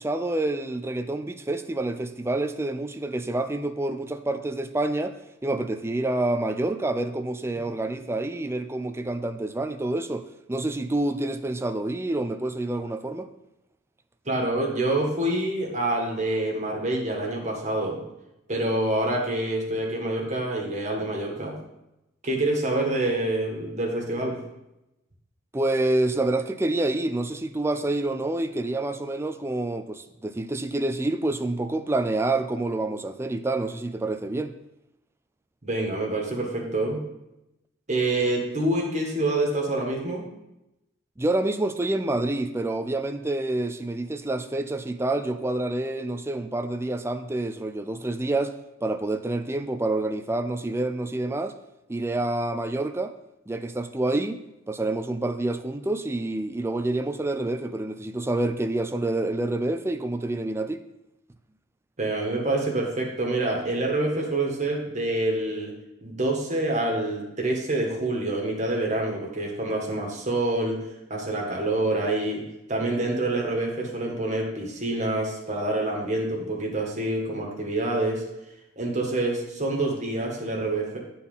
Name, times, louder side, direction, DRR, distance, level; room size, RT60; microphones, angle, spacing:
voice 1, 0.0-5.2 5.4-13.3 25.5-34.5 41.2-48.6 48.8-51.5 51.9-53.1 53.5-54.4 54.7-60.8, right 2 dB, 15° right, 0.4 m, -27 dB
voice 2, 14.2-18.0 18.5-21.5 22.2-24.4 35.6-37.0 37.9-40.2 62.0-65.7 66.0-70.8 71.1-72.4 72.7-78.2 78.8-81.0, right 2 dB, 35° right, 1.7 m, -26 dB
8.9 x 4.2 x 5.5 m
head